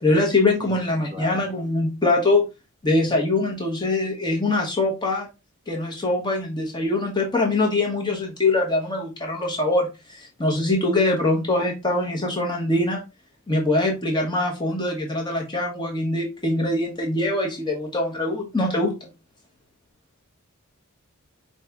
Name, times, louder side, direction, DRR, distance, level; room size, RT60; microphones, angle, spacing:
voice 1, 0.0-2.5 2.8-5.3 5.7-13.0 13.5-18.9, left 2 dB, 20° left, 0 dB, 0.9 m, -23 dB
voice 2, 0.6-1.4, left 2 dB, 35° right, 0 dB, 1.9 m, -38 dB
4.8 x 2.7 x 3.4 m, 0.26 s
head